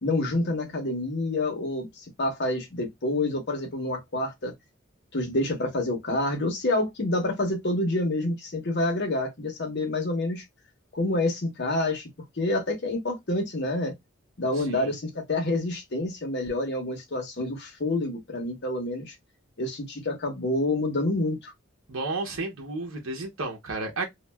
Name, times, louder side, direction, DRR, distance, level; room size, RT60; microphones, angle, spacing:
voice 1, 0.0-4.5 5.1-10.4 10.9-12.1 12.4-13.9 14.4-19.1 19.6-21.5, left 2 dB, 55° left, 0.9 m, -28 dB
voice 2, 21.9-24.1, right 3 dB, 75° right, 0.8 m, -32 dB
3.1 x 2.4 x 2.2 m
head